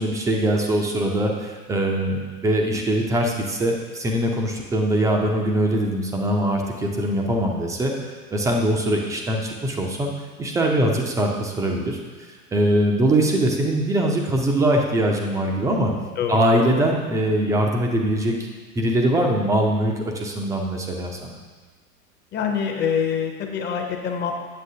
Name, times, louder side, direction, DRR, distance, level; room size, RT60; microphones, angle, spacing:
voice 1, 0.0-10.1 10.4-12.0 12.5-15.9 16.3-18.5 18.8-21.4, right 1 dB, 5° right, 1 dB, 0.4 m, -22 dB
voice 2, 16.2-16.5 22.3-24.3, left 7 dB, 25° left, 3 dB, 0.7 m, -25 dB
8.4 x 7.2 x 2.7 m, 1.4 s
hypercardioid pair, 110°, 46 cm